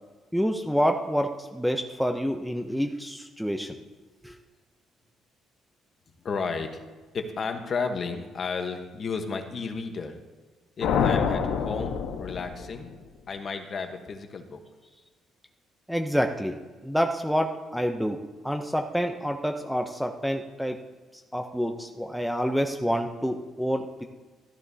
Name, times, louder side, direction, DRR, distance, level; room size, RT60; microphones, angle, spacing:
voice 1, 0.3-3.8 4.2-4.4 15.9-20.8 21.1-24.0, equal, ahead, 4 dB, 0.6 m, -28 dB
voice 2, 6.2-6.8 7.1-10.2 10.8-12.9 13.3-14.6, left 4 dB, 35° left, 6 dB, 1.1 m, -33 dB
sound 1, 10.8-13.0, left 7 dB, 90° left, 1.1 m, -27 dB
13.5 x 13.0 x 2.8 m, 1.3 s
cardioid pair, 150°, 0 cm